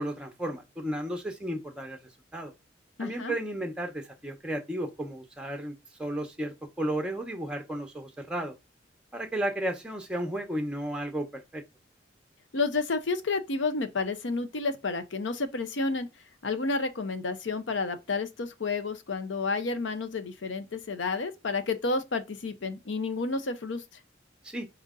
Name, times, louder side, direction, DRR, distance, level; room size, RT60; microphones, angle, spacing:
voice 1, 0.0-2.0 2.3-2.5 3.0-5.7 6.0-8.5 9.1-11.6 24.4-24.7, right 1 dB, 5° right, 0.8 m, -33 dB
voice 2, 3.0-3.4 12.5-16.1 16.4-23.8, left 3 dB, 80° left, 0.7 m, -30 dB
4.3 x 2.6 x 3.7 m
head